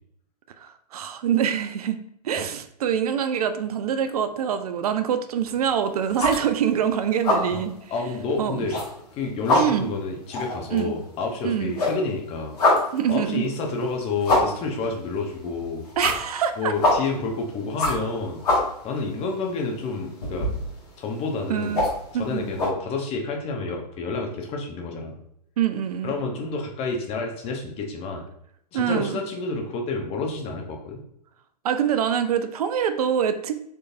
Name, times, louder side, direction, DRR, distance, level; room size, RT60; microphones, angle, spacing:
voice 1, 0.6-2.0 2.2-7.7 8.4-8.7 9.6-9.9 10.7-10.9 11.4-11.7 12.9-13.5 16.0-16.7 21.5-21.8 22.1-22.4 25.6-26.1 28.7-29.2 31.6-33.5, right 8 dB, 65° right, 10 dB, 0.4 m, -25 dB
sound 1, 5.4-5.8 6.0-6.8 7.1-7.6 7.9-8.0 8.5-9.1 9.4-11.4 11.7-22.7, left 2 dB, 65° left, 1.5 m, -25 dB
voice 2, 7.9-8.8 9.1-12.6 13.1-15.8 16.6-18.4 18.8-20.5 21.0-21.8 22.1-25.2 26.0-28.2 28.7-31.0, left 3 dB, 30° left, 2 dB, 0.8 m, -29 dB
4.5 x 3.2 x 2.5 m, 0.72 s
figure-of-eight pair, 105°, 21 cm